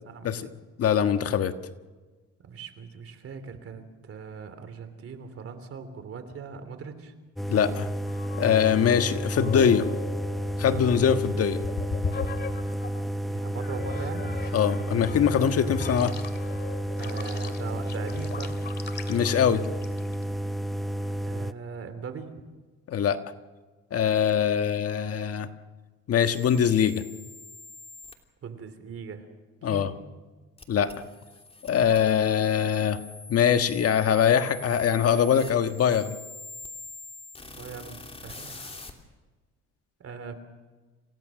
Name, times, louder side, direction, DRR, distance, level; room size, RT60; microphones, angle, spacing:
voice 1, 0.0-0.5 2.4-7.1 13.3-14.4 17.0-18.6 21.2-22.5 28.4-29.3 29.6-29.9 37.4-38.7 40.0-40.4, right 5 dB, 50° right, 9 dB, 3.3 m, -40 dB
voice 2, 0.8-1.6 7.5-7.9 8.4-9.9 10.6-11.6 14.5-16.2 19.1-19.6 22.9-23.2 23.9-25.5 26.1-27.0 29.6-29.9 30.7-30.9 31.6-33.0 33.3-36.2, left 8 dB, 55° left, 8 dB, 1.4 m, -23 dB
sound 1, 7.4-21.5, right 1 dB, ahead, 0.7 m, -31 dB
sound 2, 8.1-13.0 13.6-20.2, left 5 dB, 35° left, 2.4 m, -38 dB
sound 3, 26.2-28.1 30.6-38.9, left 2 dB, 20° left, 2.9 m, -45 dB
28.5 x 17.0 x 6.4 m, 1.3 s
cardioid pair, 110°, 30 cm